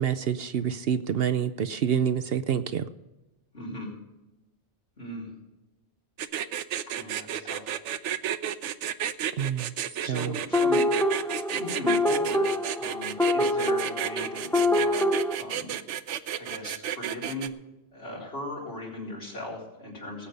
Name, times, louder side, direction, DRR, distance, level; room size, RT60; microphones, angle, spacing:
voice 1, 0.0-2.9 9.4-9.7 10.0-10.3, right 8 dB, 60° right, 11 dB, 0.8 m, -27 dB
voice 2, 3.5-3.9 5.0-5.3 7.0-7.8 10.0-10.8 11.1-15.1 15.4-15.7 16.4-17.5 17.9-20.3, left 1 dB, 60° left, -3 dB, 4.4 m, -38 dB
sound 1, 6.2-17.5, right 10 dB, 90° right, 1.0 m, -32 dB
sound 2, 10.5-15.3, left 1 dB, 5° left, 0.4 m, -25 dB
18.5 x 8.5 x 5.3 m, 1.0 s
omnidirectional pair, 1.2 m